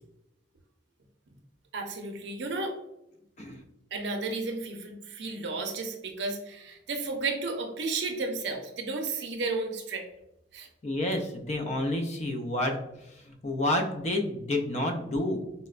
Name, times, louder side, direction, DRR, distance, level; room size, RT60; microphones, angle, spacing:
voice 1, 1.7-2.8 3.9-10.1 10.5-10.7, right 3 dB, 75° right, 3 dB, 0.5 m, -33 dB
voice 2, 10.8-15.4, left 1 dB, 35° left, 3 dB, 0.4 m, -30 dB
4.1 x 2.1 x 2.3 m, 0.87 s
head